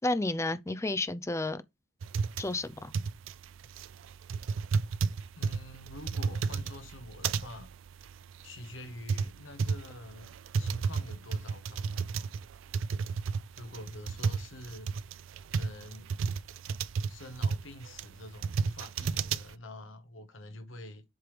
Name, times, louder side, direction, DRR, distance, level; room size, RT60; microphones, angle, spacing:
voice 1, 0.0-1.6 2.4-2.9, left 2 dB, 15° left, 0.5 m, -31 dB
sound 1, 2.0-19.5, right 5 dB, 85° right, 0.4 m, -33 dB
voice 2, 5.3-7.7 8.4-12.4 13.5-14.9 15.5-16.2 17.1-21.0, left 1 dB, 80° left, 1.3 m, -46 dB
7.7 x 3.3 x 5.1 m
head